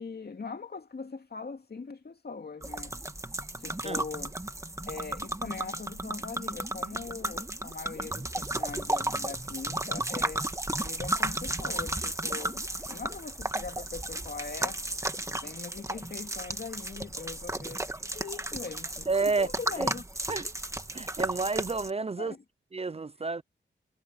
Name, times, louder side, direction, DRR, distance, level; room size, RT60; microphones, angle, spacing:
voice 1, 0.0-3.0 3.6-4.3 4.9-10.5 10.8-14.8 15.3-19.1 19.4-20.0 22.2-22.4, left 4 dB, 55° left, 2.5 m, -41 dB
sound 1, 2.6-21.9, right 1 dB, 15° right, 1.4 m, -34 dB
voice 2, 19.1-19.5 19.8-19.9 20.3-20.5 20.9-22.4 22.7-23.4, right 4 dB, 30° right, 0.6 m, -30 dB
wide cardioid pair, 75°, 20 cm